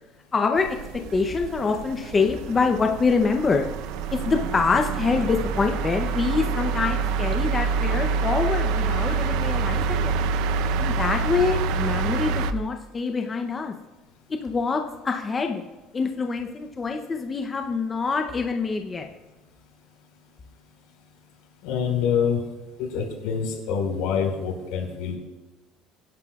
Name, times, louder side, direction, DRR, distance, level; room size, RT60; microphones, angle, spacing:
voice 1, 0.3-0.7 1.1-3.7 4.1-10.1 10.8-13.7 14.4-15.6 15.9-19.1, left 4 dB, 15° left, 3 dB, 0.7 m, -25 dB
sound 1, 0.6-12.5, right 5 dB, 65° right, 0.7 m, -26 dB
voice 2, 21.6-22.4 22.8-25.2, left 7 dB, 80° left, 1 dB, 4.5 m, -26 dB
27.5 x 11.0 x 2.4 m, 1.1 s
cardioid pair, 180°, 0 cm